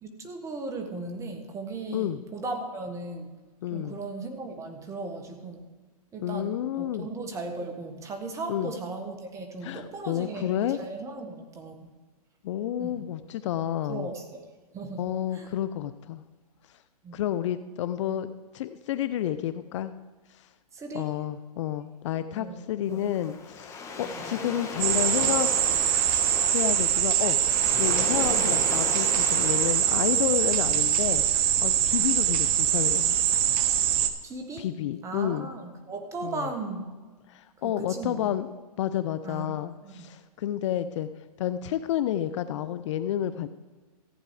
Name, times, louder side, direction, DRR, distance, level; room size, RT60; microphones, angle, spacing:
voice 1, 0.0-3.3 3.7-5.6 6.1-11.9 12.8-13.0 13.9-14.5 14.7-15.5 17.0-17.2 20.7-21.2 22.3-23.0 24.0-24.4 32.0-32.1 34.2-34.7 35.0-36.9 37.6-38.3 39.2-40.1, right 3 dB, 15° right, 5 dB, 1.5 m, -37 dB
voice 2, 3.6-4.0 6.2-7.1 8.5-8.7 9.6-10.8 12.4-14.1 15.0-16.2 17.1-19.9 20.9-25.5 26.5-31.2 31.6-33.1 34.6-35.5 36.2-36.5 37.3-38.5 38.8-41.1 41.4-43.5, left 11 dB, 50° left, 12 dB, 0.6 m, -30 dB
Waves surf, 22.9-31.1, left 4 dB, 15° left, 1.6 m, -37 dB
sound 1, 24.8-34.1, right 11 dB, 30° right, 0.8 m, -23 dB
15.0 x 8.8 x 4.9 m, 1.3 s
hypercardioid pair, 140°, 20 cm